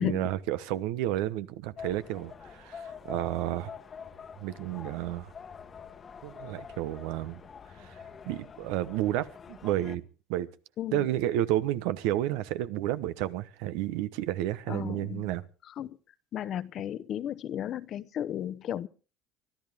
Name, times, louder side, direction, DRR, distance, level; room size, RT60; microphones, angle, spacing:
voice 1, 0.0-3.7 4.4-5.3 6.2-7.4 7.8-8.0 8.2-10.0 10.3-10.5 10.9-15.4, right 14 dB, 80° right, 1.0 m, -31 dB
sound 1, 1.8-10.0, left 6 dB, 35° left, 1.2 m, -46 dB
voice 2, 14.7-15.3 15.8-16.0 16.3-18.9, left 10 dB, 50° left, 0.8 m, -34 dB
24.0 x 12.5 x 3.5 m
supercardioid pair, 100°, 0 cm